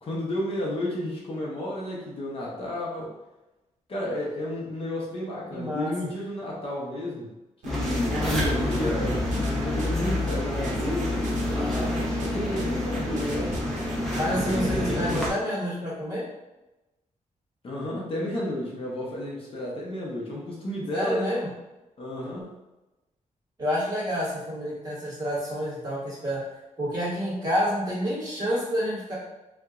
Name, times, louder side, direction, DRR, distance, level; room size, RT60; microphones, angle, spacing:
voice 1, 0.0-3.1 3.9-7.3 7.6-11.1 12.2-13.5 14.3-15.0 17.6-21.3 22.0-22.5, left 1 dB, 45° left, -4 dB, 0.7 m, -32 dB
voice 2, 5.5-5.9 14.2-16.2 20.9-21.5 23.6-26.4 26.8-29.1, equal, 30° right, -8 dB, 1.4 m, -28 dB
sound 1, 7.6-15.3, right 3 dB, 70° right, 0.6 m, -42 dB
sound 2, 7.7-15.3, left 1 dB, ahead, 0.7 m, -27 dB
3.4 x 2.8 x 2.4 m, 1.0 s
wide cardioid pair, 175°, 13 cm